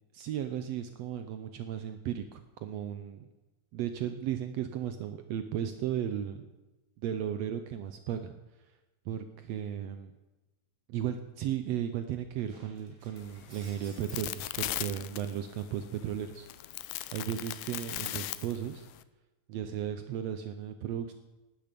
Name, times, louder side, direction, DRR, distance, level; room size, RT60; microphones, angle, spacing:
voice 1, 0.1-3.3 3.7-6.5 7.0-8.3 9.0-10.1 10.9-16.5 16.8-18.9 19.5-21.1, right 10 dB, 85° right, 9 dB, 1.4 m, -35 dB
Shatter, 12.5-15.3 15.8-18.9, right 2 dB, 30° right, 4.3 m, -58 dB
sound 1, 13.2-19.0, left 16 dB, 80° left, 2.2 m, -39 dB
17.5 x 12.5 x 5.2 m, 1.1 s
omnidirectional pair, 4.0 m